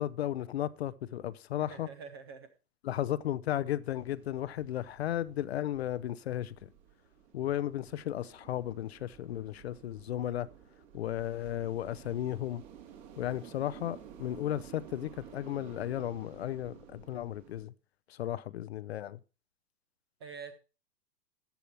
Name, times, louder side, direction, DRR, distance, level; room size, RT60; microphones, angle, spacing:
voice 1, 0.0-1.9 2.8-6.7 7.3-10.5 10.9-12.6 13.2-17.7 18.1-19.2, left 12 dB, 40° left, 0.5 m, -34 dB
voice 2, 1.6-2.5 13.3-13.5 20.2-20.6, right 5 dB, 15° right, 0.4 m, -46 dB
sound 1, 3.8-17.6, right 9 dB, 45° right, 2.7 m, -53 dB
14.0 x 9.2 x 2.8 m
hypercardioid pair, 125°, 49 cm